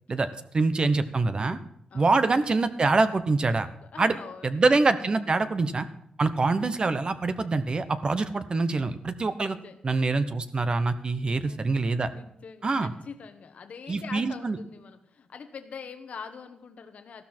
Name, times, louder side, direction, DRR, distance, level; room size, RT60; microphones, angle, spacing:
voice 1, 0.5-1.6 1.9-3.7 4.0-4.1 4.4-5.9 6.2-9.6 9.8-12.1 12.6-12.9 13.9-14.6, right 3 dB, 40° right, 11 dB, 0.9 m, -25 dB
voice 2, 3.8-4.6 9.5-9.8 11.2-17.2, left 6 dB, 70° left, 8 dB, 1.1 m, -44 dB
14.5 x 12.5 x 4.4 m, 0.74 s
wide cardioid pair, 120°, 2 cm